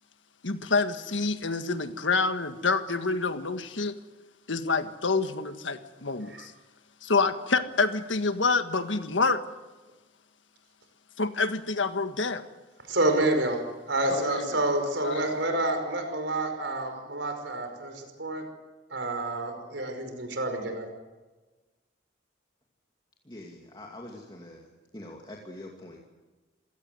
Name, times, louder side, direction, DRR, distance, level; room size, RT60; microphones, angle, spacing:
voice 1, 0.4-4.0 4.5-6.5 7.0-9.4 11.2-12.4 14.1-14.6 15.0-15.2, left 4 dB, 80° left, 9 dB, 1.7 m, -27 dB
voice 2, 12.9-18.4 18.9-20.9, right 2 dB, 70° right, 6 dB, 5.4 m, -28 dB
voice 3, 23.3-24.7 24.9-26.0, left 1 dB, 25° left, 0 dB, 2.5 m, -44 dB
27.0 x 18.0 x 7.9 m, 1.2 s
head